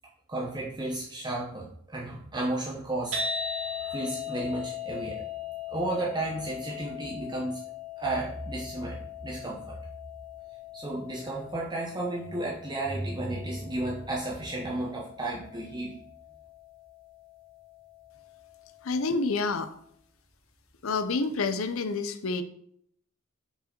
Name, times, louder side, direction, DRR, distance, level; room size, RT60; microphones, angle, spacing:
voice 1, 0.3-5.3 5.7-7.6 8.0-9.8 10.7-16.0, right 2 dB, 20° right, -4 dB, 0.8 m, -33 dB
sound 1, 3.1-19.3, left 6 dB, 65° right, 2.1 m, -40 dB
voice 2, 18.8-19.7 20.8-22.4, left 3 dB, 75° left, 10 dB, 0.6 m, -28 dB
5.6 x 4.7 x 4.4 m, 0.68 s
head